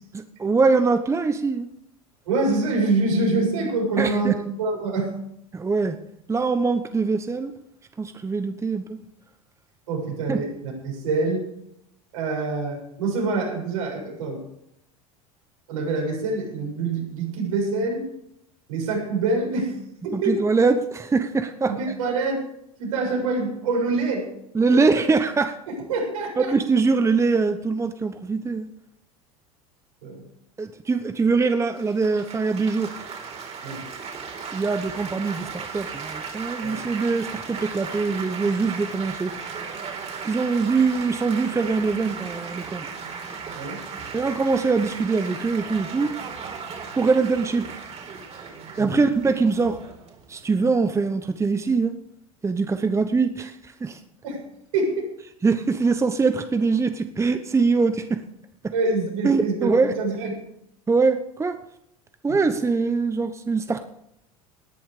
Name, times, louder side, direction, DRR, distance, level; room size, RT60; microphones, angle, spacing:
voice 1, 0.1-1.7 4.0-4.3 5.5-6.0 6.3-7.5 8.0-9.0 10.3-10.4 20.1-21.7 24.5-25.6 26.4-28.7 30.6-32.9 34.5-39.3 40.2-42.9 44.1-46.1 46.9-47.7 48.8-49.8 50.3-51.9 52.4-54.0 55.4-58.2 59.2-59.9 60.9-61.6 62.2-63.8, right 4 dB, 15° right, 9 dB, 1.0 m, -23 dB
voice 2, 2.3-5.1 9.9-11.5 12.1-14.4 15.7-18.0 18.7-19.8 20.0-20.4 21.6-22.4 22.8-24.3 24.6-25.0 25.7-26.5 30.0-30.2 33.6-33.8 36.6-36.8 43.6-43.8 48.8-49.0 54.2-54.4 54.7-55.1 58.7-60.3 62.3-62.6, right 3 dB, 70° right, 0 dB, 7.1 m, -25 dB
Laughter / Applause / Chatter, 31.8-50.9, right 5 dB, 35° right, 4.1 m, -36 dB
19.0 x 10.5 x 5.0 m, 0.76 s
hypercardioid pair, 80°, 18 cm